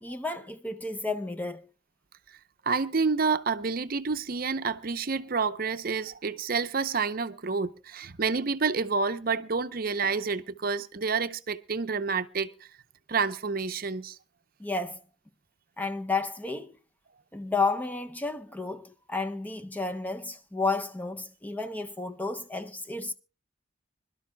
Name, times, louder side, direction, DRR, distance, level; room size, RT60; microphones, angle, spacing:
voice 1, 0.0-1.7 14.6-15.0 15.8-16.8 17.3-23.1, left 3 dB, 10° left, 0.5 m, -32 dB
voice 2, 2.7-12.5 13.1-14.2, right 5 dB, 50° right, 0.6 m, -29 dB
26.0 x 12.0 x 2.2 m
head